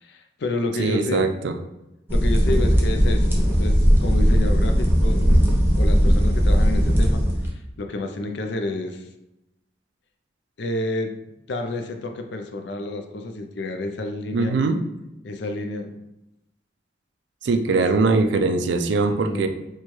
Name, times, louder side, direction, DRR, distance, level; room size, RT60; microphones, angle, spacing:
voice 1, 0.0-1.3 2.1-5.3 5.8-7.2 7.8-9.1 10.6-11.2 11.5-14.6 15.2-16.0 17.7-17.8 19.0-19.5, left 2 dB, 60° left, 5 dB, 0.4 m, -29 dB
voice 2, 0.8-1.5 14.3-14.8 17.4-19.5, right 3 dB, 65° right, 6 dB, 0.4 m, -21 dB
sound 1, 2.1-7.5, equal, 10° right, 0.5 m, -18 dB
4.4 x 2.2 x 3.0 m, 0.92 s
head